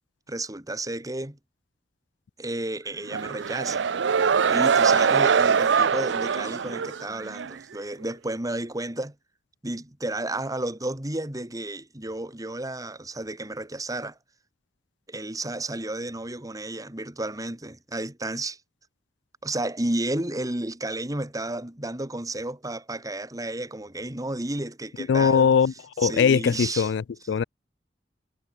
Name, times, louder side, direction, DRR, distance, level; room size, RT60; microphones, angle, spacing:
voice 1, 0.3-1.4 2.4-3.8 4.5-9.2 9.6-14.2 15.1-18.6 19.4-25.5 26.0-26.9 27.3-27.5, right 2 dB, 20° right, 2.0 m, -32 dB
sound 1, 3.1-7.6, right 6 dB, 80° right, 0.5 m, -22 dB
voice 2, 25.1-27.4, left 6 dB, 70° left, 0.4 m, -21 dB
head